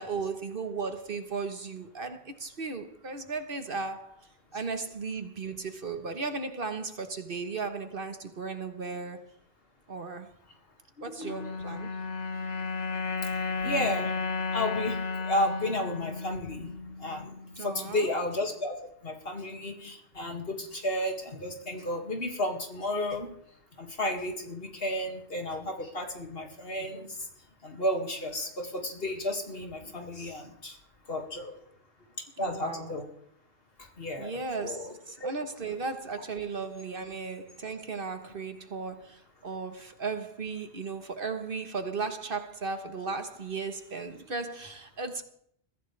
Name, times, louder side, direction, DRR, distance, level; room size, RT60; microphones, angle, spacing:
voice 1, 0.0-9.3 9.9-10.3 11.0-11.9 17.6-18.1 32.4-33.0 34.2-45.2, right 4 dB, 50° right, 1.4 m, -36 dB
sound 1, 11.2-17.6, left 4 dB, 85° left, 1.4 m, -33 dB
voice 2, 13.6-14.1 14.5-16.7 17.0-18.8 19.0-23.3 23.8-27.3 27.6-30.8 31.1-31.6 32.4-33.1 33.8-35.3, left 1 dB, 55° left, 2.3 m, -33 dB
22.0 x 15.0 x 3.3 m
omnidirectional pair, 1.2 m